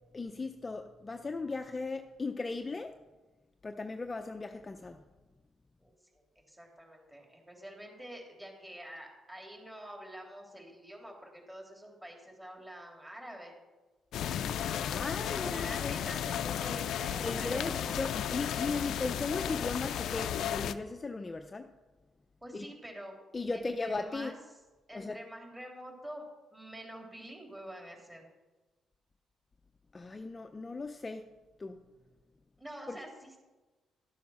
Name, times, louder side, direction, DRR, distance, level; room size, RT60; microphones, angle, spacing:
voice 1, 0.1-2.9 3.6-5.0 14.8-15.9 17.2-21.7 22.5-22.7 23.3-24.3 24.9-25.2 29.9-31.3 31.6-31.9 32.9-33.0, left 3 dB, 25° left, 6 dB, 0.7 m, -37 dB
voice 2, 5.8-13.5 15.3-18.0 22.4-23.1 23.5-24.4 24.9-26.3 26.5-28.3 32.6-33.4, equal, 10° right, 1 dB, 3.3 m, -47 dB
sound 1, 14.1-20.7, left 9 dB, 75° left, 0.5 m, -34 dB
12.5 x 8.3 x 5.7 m, 1.2 s
cardioid pair, 90°, 0 cm